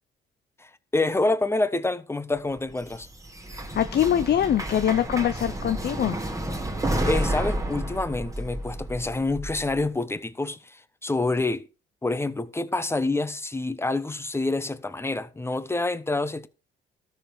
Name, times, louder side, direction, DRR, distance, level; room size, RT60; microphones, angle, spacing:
voice 1, 0.6-3.1 6.9-11.6 12.0-16.5, left 2 dB, 10° left, 1.1 m, -27 dB
sound 1, 2.5-9.8, right 1 dB, 15° right, 2.2 m, -31 dB
voice 2, 3.5-6.2, left 10 dB, 55° left, 0.8 m, -23 dB
13.0 x 7.0 x 5.0 m
cardioid pair, 90°, 20 cm